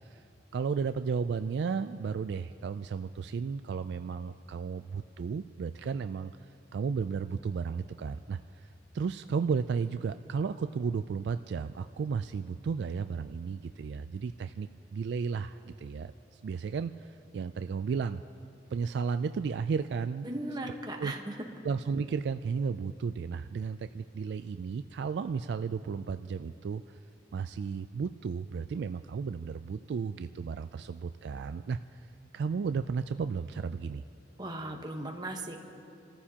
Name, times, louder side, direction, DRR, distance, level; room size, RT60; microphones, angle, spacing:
voice 1, 0.5-6.3 6.7-8.4 8.9-16.1 16.4-18.2 18.7-20.3 21.0-21.1 21.6-27.0 27.3-31.8 32.3-34.0, right 5 dB, 65° right, 10 dB, 0.3 m, -33 dB
voice 2, 20.2-21.3 34.4-35.6, right 1 dB, 25° right, 2 dB, 1.2 m, -37 dB
29.0 x 14.0 x 2.9 m, 2.6 s
head